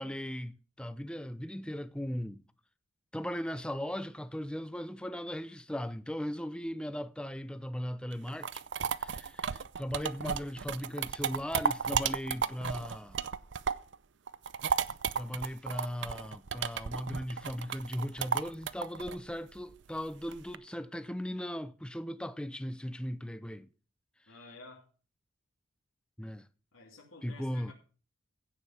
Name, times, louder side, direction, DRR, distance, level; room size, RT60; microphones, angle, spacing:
voice 1, 0.0-2.4 3.1-8.6 9.0-13.2 15.2-23.7 26.2-26.5 27.2-27.7, equal, 5° left, 0.5 m, -38 dB
sound 1, 8.1-14.0 14.3-20.6, right 6 dB, 60° right, 0.5 m, -34 dB
voice 2, 24.3-24.9 26.7-27.7, left 3 dB, 85° left, 2.9 m, -52 dB
16.0 x 5.3 x 5.8 m
head